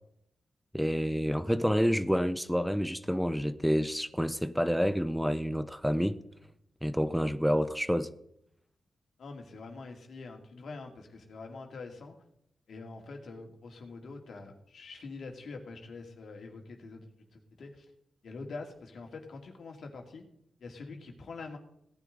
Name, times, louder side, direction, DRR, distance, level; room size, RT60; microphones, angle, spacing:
voice 1, 0.7-6.2 6.8-8.1, equal, ahead, 0.7 m, -28 dB
voice 2, 9.2-12.1 12.7-17.0 17.3-17.8 18.2-20.2 20.6-21.6, left 3 dB, 70° left, 2.6 m, -45 dB
17.5 x 9.9 x 4.0 m
cardioid pair, 75°, 0 cm